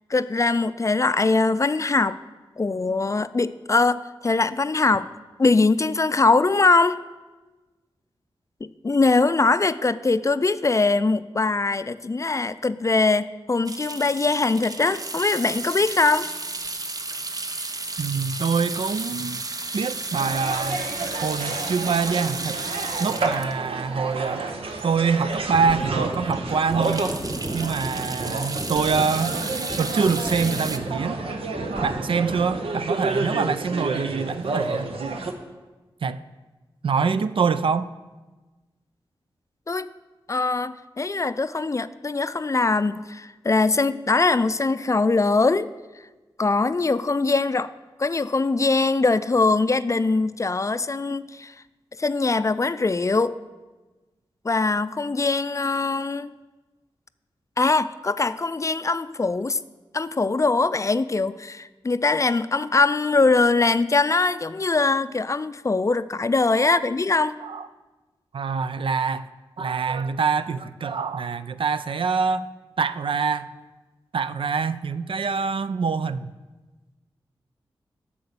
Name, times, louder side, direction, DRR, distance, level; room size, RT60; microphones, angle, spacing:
voice 1, 0.1-2.2 2.6-5.1 5.4-7.0 8.6-16.3 39.7-39.9 40.3-45.7 46.4-47.7 48.0-51.5 52.0-53.4 54.4-56.3 57.6-59.6 59.9-67.4, left 3 dB, 35° left, 14 dB, 0.4 m, -22 dB
sound 1, 13.7-25.0 25.4-25.5 25.8-25.9 26.3-30.8, right 2 dB, 40° right, 0.8 m, -33 dB
voice 2, 18.0-19.4 19.7-20.9 21.2-22.6 23.0-24.5 24.8-27.1 27.5-29.4 29.8-31.3 31.8-34.9 36.0-36.2 36.8-37.9 66.6-66.8 67.4-67.7 68.3-69.3 69.6-72.5 72.8-73.5 74.1-76.3, right 5 dB, 65° right, 13 dB, 0.4 m, -25 dB
sound 2, 20.1-35.3, right 3 dB, 85° right, 0.8 m, -30 dB
sound 3, 25.4-32.7, right 1 dB, 20° right, 3.8 m, -34 dB
8.6 x 7.0 x 6.8 m, 1.2 s
cardioid pair, 50°, 9 cm